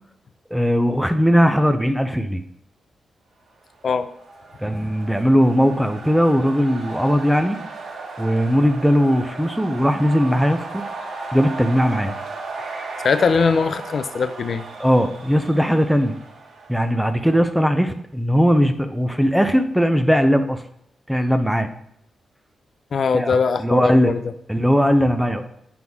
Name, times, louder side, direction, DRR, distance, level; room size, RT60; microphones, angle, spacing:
voice 1, 0.5-2.4 4.6-7.6 8.2-10.8 11.3-12.1 14.8-16.2 16.7-20.6 21.1-21.7 23.1-24.1 24.5-25.4, equal, ahead, 7 dB, 0.5 m, -19 dB
sound 1, 3.8-17.6, right 3 dB, 60° right, 1.4 m, -36 dB
voice 2, 13.0-14.6 22.9-24.2, left 5 dB, 45° left, 11 dB, 0.5 m, -20 dB
9.3 x 6.0 x 3.6 m, 0.72 s
wide cardioid pair, 165°, 0 cm